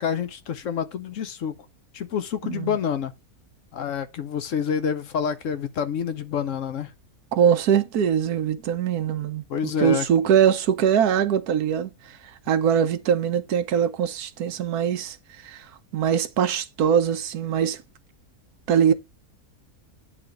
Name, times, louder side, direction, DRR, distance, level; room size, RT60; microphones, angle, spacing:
voice 1, 0.0-1.6 1.9-3.1 3.7-6.9 9.5-10.1, left 7 dB, 65° left, 1.0 m, -28 dB
voice 2, 7.3-9.4 9.8-11.9 12.5-15.2 15.4-15.6 15.9-17.8 18.7-18.9, right 8 dB, 90° right, 1.3 m, -22 dB
8.7 x 3.4 x 5.1 m
omnidirectional pair, 1.6 m